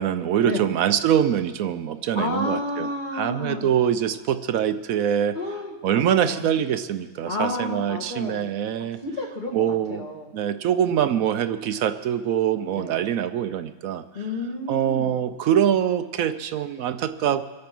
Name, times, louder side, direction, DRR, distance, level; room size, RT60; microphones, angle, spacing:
voice 1, 0.0-2.9 3.1-5.4 5.8-9.0 9.5-10.0 10.3-14.0 14.7-17.4, right 9 dB, 75° right, 10 dB, 1.0 m, -24 dB
voice 2, 2.1-3.8 5.3-6.5 7.2-8.5 8.8-10.3 12.7-13.0 14.1-15.2, left 2 dB, 30° left, -1 dB, 2.1 m, -31 dB
24.5 x 8.6 x 6.0 m, 1.3 s
omnidirectional pair, 1.5 m